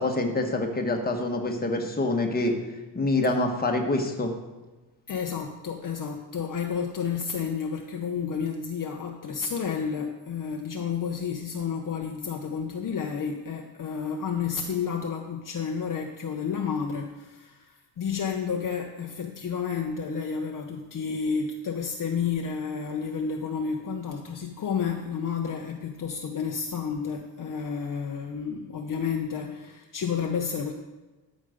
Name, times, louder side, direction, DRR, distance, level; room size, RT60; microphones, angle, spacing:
voice 1, 0.0-2.5 2.9-4.3, left 2 dB, 20° left, 2 dB, 1.3 m, -26 dB
voice 2, 5.1-30.7, left 6 dB, 50° left, 2 dB, 0.8 m, -31 dB
12.5 x 5.3 x 5.1 m, 1.2 s
cardioid pair, 115°, 42 cm